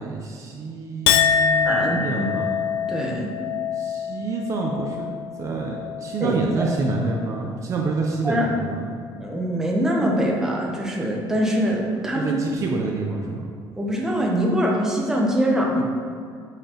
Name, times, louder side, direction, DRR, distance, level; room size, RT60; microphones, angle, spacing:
voice 1, 0.0-2.5 3.7-5.1 5.4-8.9 12.1-13.5, right 3 dB, 35° right, 0 dB, 0.6 m, -27 dB
Chink clink, 1.1-7.6 8.0-8.6, left 8 dB, 80° left, 0.4 m, -26 dB
voice 2, 1.6-2.3 2.9-3.3 6.2-6.7 8.2-8.5 9.2-12.3 13.8-15.8, equal, 5° right, -2 dB, 0.8 m, -23 dB
7.8 x 6.7 x 3.0 m, 2.3 s
cardioid pair, 175°, 9 cm